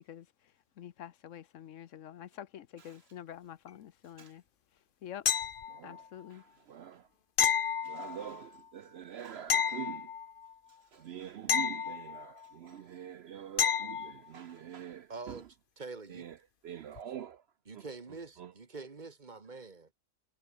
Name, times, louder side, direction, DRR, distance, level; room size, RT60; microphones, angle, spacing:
voice 1, 0.8-4.4 5.0-5.3 5.8-6.4, left 10 dB, 65° left, 1.1 m, -47 dB
sound 1, 5.3-6.0 7.4-8.5 9.5-10.5 11.5-12.5 13.6-14.2 17.0-17.1, left 7 dB, 45° left, 0.9 m, -31 dB
voice 2, 5.7-7.1 7.8-10.1 10.9-15.4 16.1-16.4 16.6-17.4 17.7-17.9 18.4-18.5, right 10 dB, 60° right, 0.7 m, -45 dB
voice 3, 15.1-15.5 15.8-16.3 17.7-19.9, right 4 dB, 35° right, 1.5 m, -45 dB
omnidirectional pair, 1.4 m